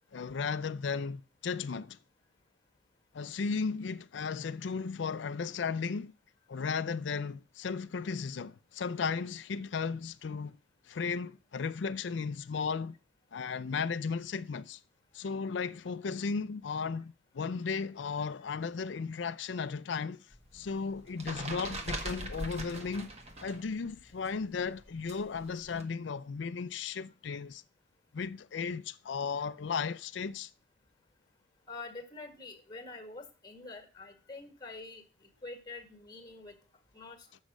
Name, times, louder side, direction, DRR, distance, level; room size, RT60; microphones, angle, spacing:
voice 1, 0.1-2.0 3.1-6.1 6.5-10.6 10.9-12.9 13.3-14.8 15.1-20.3 20.5-23.1 23.4-27.6 28.1-30.5, left 5 dB, 70° left, 0.4 m, -35 dB
sound 1, 20.3-23.7 23.9-25.8, right 1 dB, 35° right, 1.5 m, -41 dB
voice 2, 31.7-36.6 36.9-37.3, left 3 dB, 20° left, 1.8 m, -46 dB
8.2 x 6.3 x 6.2 m
head